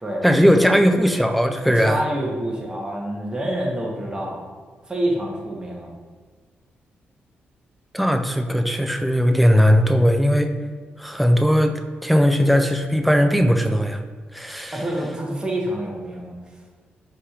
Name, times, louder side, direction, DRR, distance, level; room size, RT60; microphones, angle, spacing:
voice 1, 0.2-2.0 7.9-10.5 11.0-11.7 12.0-14.0 14.3-14.8, equal, ahead, 5 dB, 0.4 m, -18 dB
voice 2, 1.6-4.4 4.9-5.9 14.7-16.3, right 1 dB, 20° right, -1 dB, 0.9 m, -27 dB
4.7 x 2.9 x 2.4 m, 1.5 s
cardioid pair, 70°, 4 cm